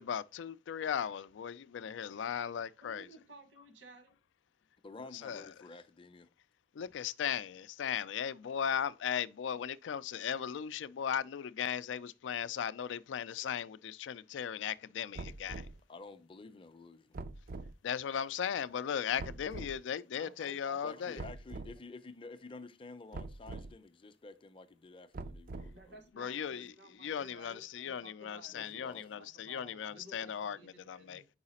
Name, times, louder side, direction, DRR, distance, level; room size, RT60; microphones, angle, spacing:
voice 1, 0.0-3.1 5.2-5.4 6.8-15.7 17.8-21.2 26.2-26.7 27.0-31.2, left 8 dB, 85° left, 0.3 m, -37 dB
voice 2, 2.8-4.2 20.1-21.3 21.7-21.8 25.7-31.3, right 2 dB, 75° right, 1.3 m, -56 dB
voice 3, 4.8-6.3 15.9-17.2 20.8-26.0 26.2-26.7 28.5-29.2, left 3 dB, 30° left, 0.5 m, -51 dB
sound 1, 15.1-15.8 17.1-17.7 19.2-19.8 21.2-21.7 23.1-23.7 25.1-25.9, right 3 dB, 50° right, 0.4 m, -43 dB
4.8 x 4.8 x 4.1 m
head